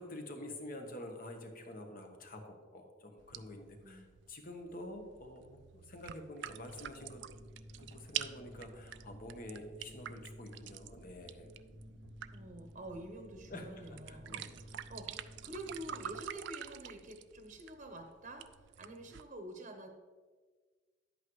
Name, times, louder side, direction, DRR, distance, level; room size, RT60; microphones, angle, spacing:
voice 1, 0.0-7.2 7.8-11.5 13.5-14.9, left 1 dB, 45° left, 4 dB, 1.2 m, -48 dB
sound 1, 3.2-19.2, right 11 dB, 65° right, 0.3 m, -48 dB
sound 2, 6.4-16.2, equal, 30° left, 2.3 m, -55 dB
voice 2, 12.3-19.9, right 1 dB, 40° right, 4 dB, 0.9 m, -48 dB
11.0 x 8.4 x 3.2 m, 1.5 s
head